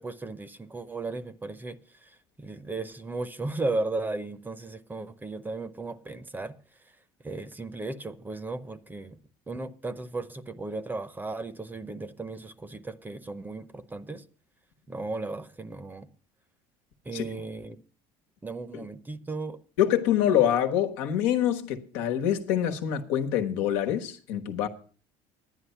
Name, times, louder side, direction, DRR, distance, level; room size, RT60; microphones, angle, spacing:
voice 1, 0.0-6.6 7.2-9.2 9.5-14.2 14.9-16.1 17.0-17.8 18.4-19.6, right 3 dB, 15° right, 0.7 m, -35 dB
voice 2, 19.8-24.7, left 10 dB, 90° left, 1.3 m, -25 dB
10.5 x 10.0 x 5.6 m
cardioid pair, 120°, 13 cm